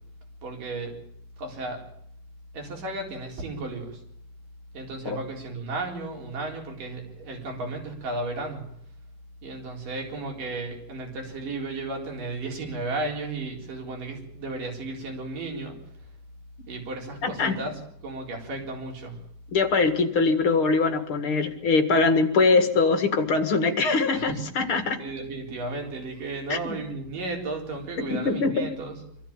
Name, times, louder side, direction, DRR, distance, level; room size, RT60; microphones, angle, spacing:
voice 1, 0.4-1.0 1.4-1.8 2.5-4.0 4.7-8.7 9.4-15.8 16.7-19.2 24.1-29.0, right 2 dB, 80° right, 1 dB, 5.7 m, -34 dB
voice 2, 17.2-17.5 19.5-25.0 26.5-26.8 28.1-28.7, left 4 dB, 45° left, 7 dB, 2.4 m, -22 dB
25.0 x 14.0 x 8.8 m, 0.75 s
omnidirectional pair, 3.7 m